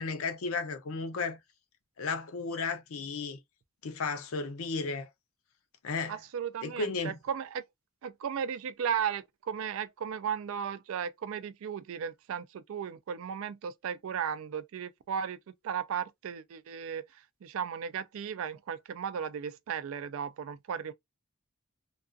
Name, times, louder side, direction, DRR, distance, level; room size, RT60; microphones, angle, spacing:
voice 1, 0.0-1.4 2.0-3.4 3.8-5.1 5.8-6.2 6.6-7.2, left 4 dB, 65° left, 0.5 m, -34 dB
voice 2, 6.1-7.6 8.0-17.1 17.4-20.9, right 7 dB, 60° right, 0.3 m, -35 dB
2.3 x 2.3 x 2.4 m
head